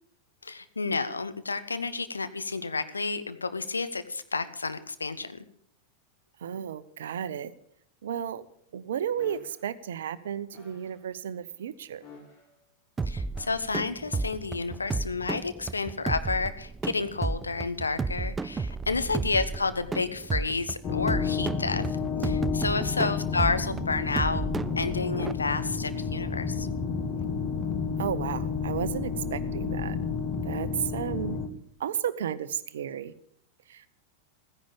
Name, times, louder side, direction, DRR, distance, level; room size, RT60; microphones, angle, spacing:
voice 1, 0.4-5.4 13.0-24.5 24.8-26.7, left 4 dB, 80° left, 11 dB, 1.0 m, -30 dB
voice 2, 6.4-7.5 8.0-8.4 8.7-12.0 19.1-19.3 22.9-23.1 28.0-30.0 30.4-31.4 31.8-33.1 33.7-33.9, right 9 dB, 60° right, 15 dB, 0.9 m, -33 dB
sound 1, 9.2-9.6 10.5-11.0 12.0-12.6 13.3-13.9 14.7-14.9, left 4 dB, 45° left, 6.9 m, -52 dB
sound 2, 13.0-25.3, right 4 dB, 15° right, 0.5 m, -33 dB
sound 3, 20.8-31.5, left 5 dB, 25° left, 1.8 m, -31 dB
14.5 x 10.5 x 7.0 m, 0.67 s
figure-of-eight pair, 90°, 0 cm